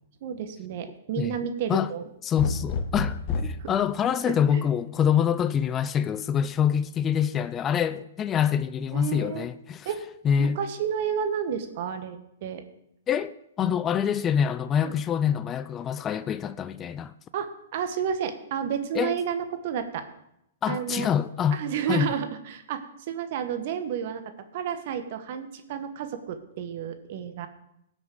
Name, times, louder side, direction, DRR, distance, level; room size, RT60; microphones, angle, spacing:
voice 1, 0.2-2.0 2.4-2.6 3.6-3.7 4.0-4.6 8.9-9.5 9.8-10.0 10.4-12.6 14.8-14.9 17.3-20.0 20.7-21.1 21.5-24.2 24.5-27.5, right 8 dB, 50° right, 1.3 m, -31 dB
voice 2, 2.2-9.9 10.2-10.6 13.1-17.1 18.9-19.2 20.6-21.6 21.9-22.1, left 8 dB, 20° left, 0.4 m, -25 dB
sound 1, 2.4-3.7 5.3-5.8, left 4 dB, 45° left, 1.3 m, -29 dB
18.0 x 6.2 x 3.8 m
hypercardioid pair, 130°, 0 cm